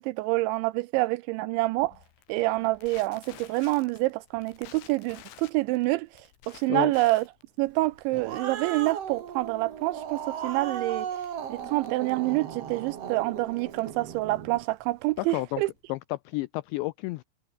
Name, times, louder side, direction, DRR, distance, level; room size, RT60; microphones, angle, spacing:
voice 1, 0.0-2.0 2.3-7.2 7.6-11.1 11.5-15.7, right 20 dB, 90° right, 2.6 m, -27 dB
Crackle, 1.8-16.0, left 11 dB, 70° left, 4.3 m, -54 dB
Growling, 7.9-14.6, right 8 dB, 60° right, 1.6 m, -37 dB
voice 2, 15.2-15.6 15.9-17.2, left 20 dB, 85° left, 2.5 m, -31 dB
omnidirectional pair, 5.8 m